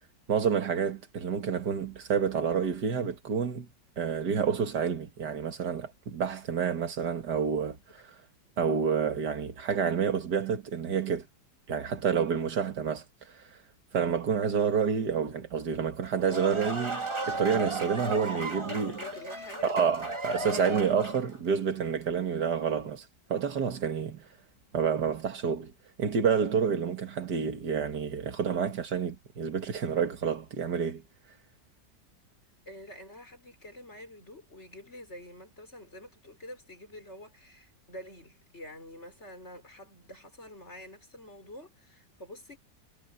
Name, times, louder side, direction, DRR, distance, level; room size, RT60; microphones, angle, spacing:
voice 1, 0.3-3.7 4.0-8.2 8.6-11.3 11.7-13.0 13.3-13.4 13.9-19.0 19.6-24.2 24.7-25.7 26.0-31.0, right 6 dB, 65° right, 2.4 m, -29 dB
sound 1, 16.0-21.4, right 2 dB, 15° right, 2.4 m, -35 dB
voice 2, 18.9-19.7 32.6-42.6, left 1 dB, 35° left, 6.6 m, -47 dB
omnidirectional pair, 1.9 m